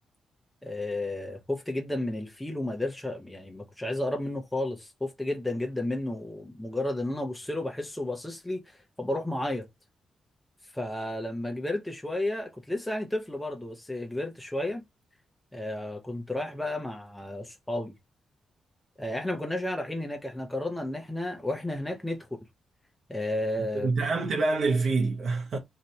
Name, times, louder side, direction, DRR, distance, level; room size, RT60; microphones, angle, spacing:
voice 1, 0.6-9.7 10.7-14.8 15.5-17.9 19.0-22.3 23.1-23.9, left 1 dB, 10° left, 0.6 m, -32 dB
voice 2, 23.7-25.6, right 3 dB, 65° right, 0.6 m, -26 dB
2.7 x 2.2 x 4.1 m
cardioid pair, 70°, 0 cm